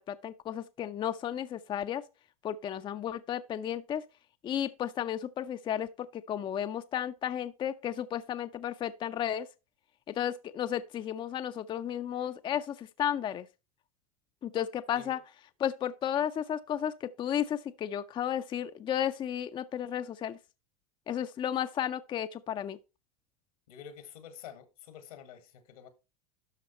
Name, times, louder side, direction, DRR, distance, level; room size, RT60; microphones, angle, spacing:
voice 1, 0.1-2.0 2.4-4.0 4.4-9.5 10.1-13.5 14.4-15.2 15.6-20.4 21.1-22.8, left 10 dB, 25° left, 0.5 m, -33 dB
voice 2, 23.7-25.9, left 8 dB, 85° left, 1.9 m, -48 dB
12.5 x 4.1 x 4.2 m
supercardioid pair, 115°, 18 cm